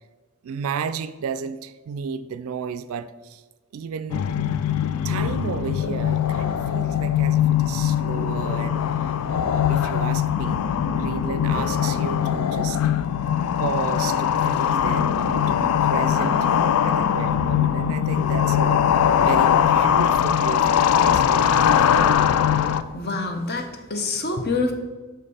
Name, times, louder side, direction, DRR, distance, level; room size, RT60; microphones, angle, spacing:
voice 1, 0.4-3.4 3.7-4.3 5.0-10.6 10.9-12.8 13.6-16.5 16.8-18.8 19.2-22.2, right 6 dB, 70° right, 0.3 m, -33 dB
sound 1, 4.1-22.8, left 9 dB, 80° left, 0.3 m, -21 dB
voice 2, 22.6-24.7, left 3 dB, 45° left, 0.8 m, -27 dB
6.4 x 5.1 x 4.2 m
head